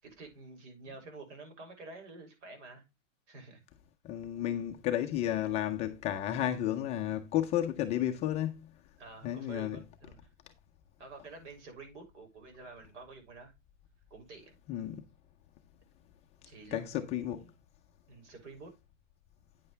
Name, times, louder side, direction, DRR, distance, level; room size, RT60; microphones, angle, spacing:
voice 1, 0.0-2.8 3.3-3.6 9.0-10.3 11.0-13.5 14.1-14.6 16.4-17.6 18.1-18.7, right 3 dB, 65° right, 6.4 m, -49 dB
voice 2, 4.0-8.7 9.2-9.8 14.7-15.0 16.7-16.8 17.1-17.4, left 11 dB, 15° left, 0.5 m, -32 dB
9.5 x 7.9 x 3.2 m
hypercardioid pair, 155°, 39 cm